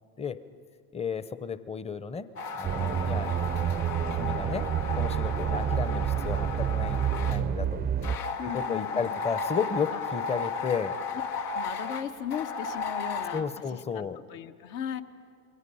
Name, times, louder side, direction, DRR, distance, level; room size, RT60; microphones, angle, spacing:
voice 1, 0.9-2.3 2.5-3.3 4.1-7.0 7.3-7.8 8.4-10.9 13.3-14.2, left 6 dB, 15° left, 14 dB, 0.7 m, -33 dB
sound 1, 2.4-7.4 8.0-13.4, left 4 dB, 85° left, 1.5 m, -34 dB
sound 2, 2.6-8.2, right 9 dB, 20° right, 0.5 m, -28 dB
voice 2, 8.4-9.2 9.9-10.0 11.5-15.0, left 9 dB, 65° left, 7 dB, 1.3 m, -37 dB
28.0 x 22.0 x 5.6 m, 2.2 s
hypercardioid pair, 95°, 44 cm